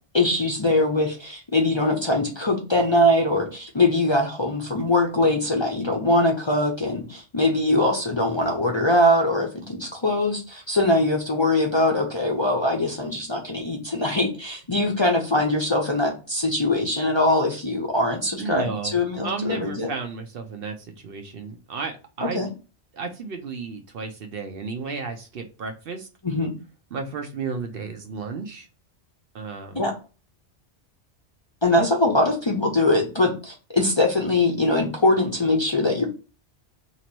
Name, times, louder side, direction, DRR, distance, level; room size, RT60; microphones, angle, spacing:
voice 1, 0.1-19.9 22.3-22.5 26.2-26.5 29.7-29.9 31.6-36.0, left 1 dB, 30° left, 0 dB, 0.6 m, -22 dB
voice 2, 18.4-18.9 19.2-22.4 22.9-26.1 26.9-28.7 29.3-29.8, right 4 dB, 60° right, 5 dB, 0.8 m, -33 dB
2.9 x 2.9 x 4.4 m, 0.33 s
omnidirectional pair, 1.2 m